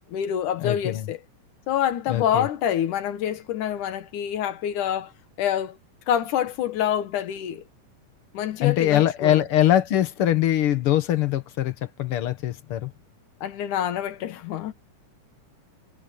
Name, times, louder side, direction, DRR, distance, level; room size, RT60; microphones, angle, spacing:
voice 1, 0.1-1.2 1.7-5.1 5.4-5.8 6.1-7.6 8.3-9.4 13.4-14.7, left 10 dB, 90° left, 2.9 m, -26 dB
voice 2, 0.6-1.1 2.1-2.5 8.6-12.9, left 12 dB, 60° left, 1.7 m, -22 dB
omnidirectional pair, 3.4 m